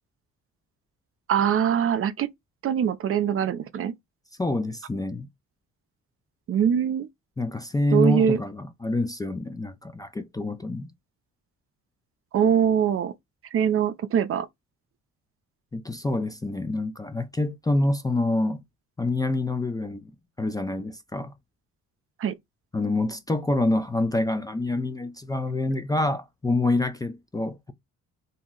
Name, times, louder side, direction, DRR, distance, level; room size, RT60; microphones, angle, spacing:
voice 1, 1.3-2.3 2.6-3.9 6.5-7.1 7.9-8.4 12.3-13.1 13.5-14.5 22.2-22.3, right 8 dB, 45° right, 0.5 m, -23 dB
voice 2, 4.4-5.3 7.4-10.9 15.7-18.6 19.0-20.0 20.4-21.3 22.7-27.7, left 2 dB, 15° left, 0.3 m, -26 dB
2.6 x 2.0 x 3.6 m
cardioid pair, 90°, 30 cm